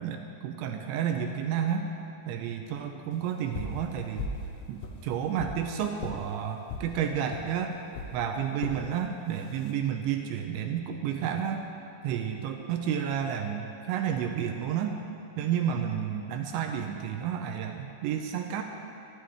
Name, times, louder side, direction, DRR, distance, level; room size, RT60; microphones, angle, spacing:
voice 1, 0.0-1.9 2.3-4.3 4.7-7.7 8.1-11.7 12.0-15.0 15.4-18.6, right 8 dB, 80° right, 4 dB, 3.0 m, -31 dB
sound 1, 3.5-3.8 4.2-4.5 4.8-5.6 6.0-6.2 6.7-6.9 7.3-7.5 7.9-8.1 8.6-8.8 9.4-9.7, left 3 dB, 70° left, 2.9 m, -36 dB
24.5 x 13.0 x 3.5 m, 2.6 s
omnidirectional pair, 5.4 m